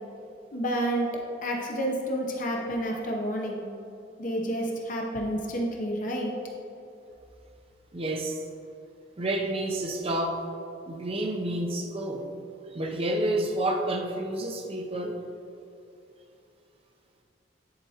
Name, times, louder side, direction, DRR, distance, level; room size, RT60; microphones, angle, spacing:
voice 1, 0.5-1.1 1.4-3.6 4.2-6.3, right 1 dB, 45° left, 0 dB, 0.7 m, -29 dB
voice 2, 7.9-8.4 9.2-10.4 10.9-12.2 12.7-15.2, right 1 dB, 35° right, 2 dB, 0.6 m, -29 dB
10.5 x 4.4 x 2.8 m, 2.7 s
head